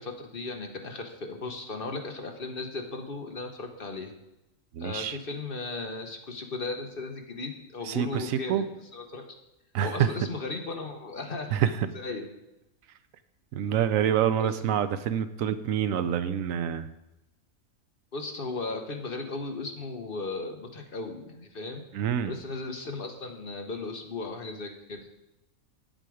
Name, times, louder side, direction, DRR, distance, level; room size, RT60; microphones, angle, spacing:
voice 1, 0.0-4.1 4.8-8.7 8.9-9.3 9.8-11.6 11.9-12.3 14.4-14.6 18.1-21.8 22.2-25.1, left 3 dB, 45° left, 4 dB, 1.1 m, -36 dB
voice 2, 4.7-5.2 7.8-8.6 9.7-10.1 11.5-11.9 13.5-16.9 21.9-22.3, right 9 dB, 75° right, 12 dB, 1.0 m, -27 dB
8.9 x 7.7 x 4.8 m, 0.93 s
omnidirectional pair, 1.4 m